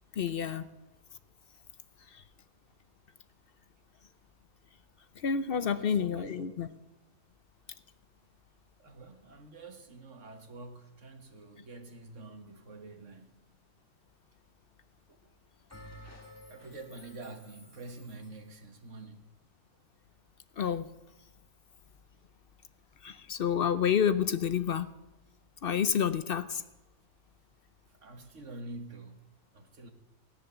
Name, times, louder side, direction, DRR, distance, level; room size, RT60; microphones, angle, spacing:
voice 1, 0.2-0.7 2.1-2.2 5.2-6.7 20.6-20.9 23.0-24.9 25.6-26.6, left 8 dB, 55° left, 0.6 m, -29 dB
voice 2, 5.6-6.7 8.8-13.4 15.1-15.3 16.5-19.3 28.0-29.9, right 2 dB, 55° right, 1.8 m, -47 dB
Bell, 15.7-18.5, left 1 dB, 10° left, 1.9 m, -52 dB
17.5 x 10.5 x 6.8 m
omnidirectional pair, 1.5 m